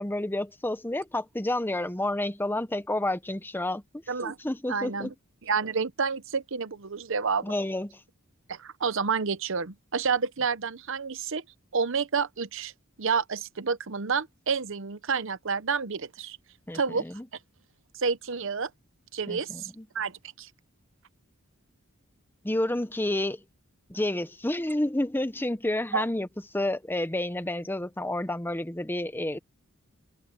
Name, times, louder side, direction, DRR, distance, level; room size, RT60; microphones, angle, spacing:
voice 1, 0.0-3.8 4.2-5.1 7.4-8.0 16.7-17.2 19.3-19.9 22.4-23.4 23.9-26.3 26.5-29.4, left 1 dB, 10° left, 0.8 m, -30 dB
voice 2, 4.7-5.1 5.4-7.5 8.5-11.4 11.7-12.7 13.0-16.4 16.7-17.0 18.0-18.7 19.1-19.7 19.9-20.5 25.9-26.0, right 5 dB, 65° right, 0.9 m, -29 dB
head